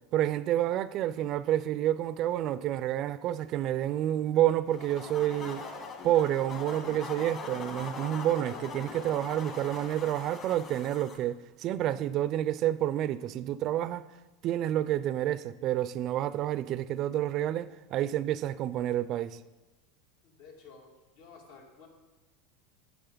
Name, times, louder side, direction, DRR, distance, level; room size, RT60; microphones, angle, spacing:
voice 1, 0.1-5.6 6.0-14.1 14.4-19.4, right 12 dB, 40° right, 0.4 m, -29 dB
sound 1, 4.7-11.2, left 4 dB, 35° left, 1.6 m, -41 dB
voice 2, 20.2-21.9, left 5 dB, 70° left, 2.7 m, -53 dB
12.0 x 9.8 x 3.9 m
supercardioid pair, 140°, 0 cm